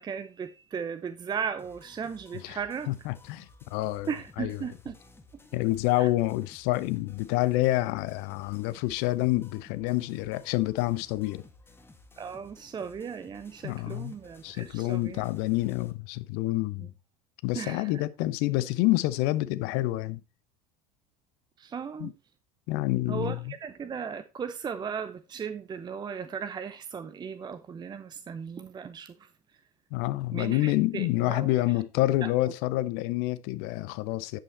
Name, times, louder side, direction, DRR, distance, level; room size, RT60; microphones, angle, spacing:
voice 1, 0.0-3.1 4.1-4.9 5.9-6.1 12.2-15.2 16.8-16.9 17.5-18.0 21.6-22.1 23.1-29.3 30.3-31.6 32.2-32.5, right 6 dB, 20° right, 0.6 m, -37 dB
sound 1, 1.6-15.9, left 2 dB, 10° left, 1.9 m, -56 dB
voice 2, 2.9-4.1 4.4-4.6 5.5-11.4 13.6-14.1 14.4-16.9 17.4-20.2 22.0-22.1 22.7-23.5 29.9-34.4, left 18 dB, 55° left, 0.7 m, -28 dB
10.0 x 5.5 x 4.2 m
hypercardioid pair, 75°, 19 cm